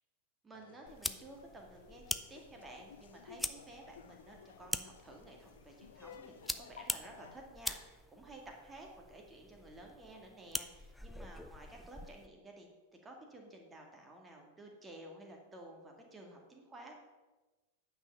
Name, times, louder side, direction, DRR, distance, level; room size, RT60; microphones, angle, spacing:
voice 1, 0.4-2.0 2.3-12.7 13.0-16.9, right 1 dB, 15° right, 2 dB, 2.1 m, -53 dB
Laughter, 0.5-7.4, left 7 dB, 65° left, 0.5 m, -57 dB
sound 1, 0.9-12.3, left 1 dB, 5° left, 0.5 m, -44 dB
9.5 x 5.5 x 6.7 m, 1.2 s
figure-of-eight pair, 90°, 0 cm